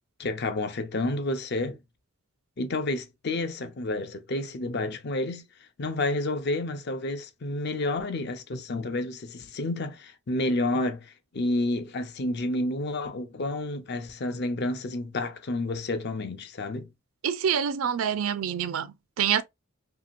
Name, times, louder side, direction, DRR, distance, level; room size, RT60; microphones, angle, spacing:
voice 1, 0.2-1.8 2.6-5.4 5.8-16.9, left 2 dB, 50° left, 0.6 m, -30 dB
voice 2, 17.2-19.4, right 8 dB, 80° right, 0.4 m, -26 dB
3.0 x 2.7 x 2.5 m
head